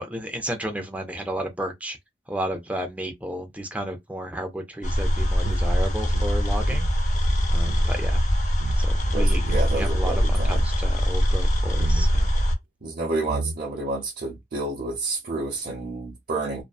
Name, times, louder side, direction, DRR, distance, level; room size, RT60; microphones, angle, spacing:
voice 1, 0.0-2.0 2.3-7.1 7.5-8.2 8.8-9.4 9.7-12.3, right 1 dB, 10° right, 0.5 m, -32 dB
sound 1, 4.8-12.6, equal, 45° left, 0.7 m, -22 dB
sound 2, 5.4-7.9 8.2-8.3 8.5-8.8 9.4-9.9 10.2-10.8 11.7-12.1 12.9-13.0 13.3-13.9, right 4 dB, 85° right, 0.3 m, -32 dB
voice 2, 9.1-10.6 12.8-16.6, right 2 dB, 55° right, 0.8 m, -30 dB
2.5 x 2.2 x 2.3 m
head